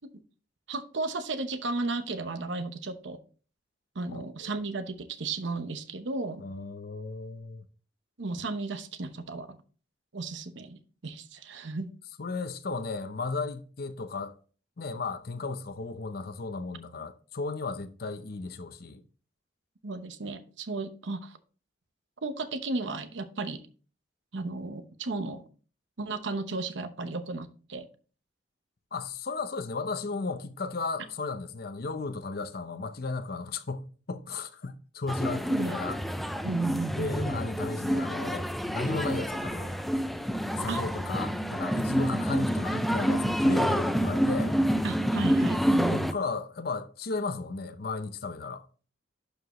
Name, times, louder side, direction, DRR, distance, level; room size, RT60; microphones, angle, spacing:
voice 1, 0.7-3.2 3.9-6.4 8.2-9.6 10.1-11.9 19.8-21.4 22.2-23.6 24.3-25.4 26.0-27.9 35.5-35.8 36.4-37.3 40.7-40.8 44.8-46.1, right 3 dB, 70° right, 0.9 m, -34 dB
voice 2, 4.1-4.5 6.4-7.6 12.2-14.3 14.8-19.0 28.9-36.0 37.0-39.8 40.6-44.5 45.9-48.7, left 3 dB, 50° left, 0.7 m, -35 dB
sound 1, 35.1-46.1, equal, ahead, 0.3 m, -28 dB
11.5 x 4.8 x 3.1 m
head